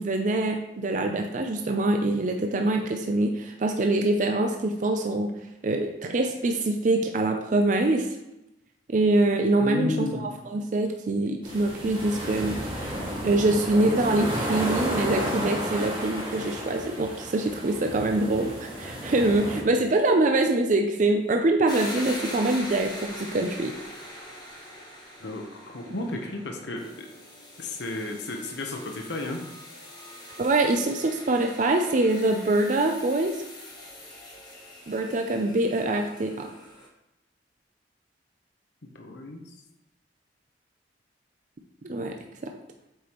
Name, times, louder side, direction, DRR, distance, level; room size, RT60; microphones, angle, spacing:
voice 1, 0.0-5.3 5.6-8.1 8.9-12.6 13.2-23.7 30.4-33.4 34.9-36.5 41.8-42.2 42.4-42.5, right 2 dB, 45° right, 4 dB, 0.5 m, -24 dB
voice 2, 9.6-10.3 25.2-27.1 27.6-29.4 38.8-39.4, left 2 dB, 70° left, 2 dB, 0.9 m, -33 dB
sound 1, 11.4-19.6, equal, 25° right, 2.0 m, -32 dB
sound 2, 21.7-36.9, left 1 dB, 25° left, 1.5 m, -42 dB
8.0 x 5.0 x 3.0 m, 0.90 s
head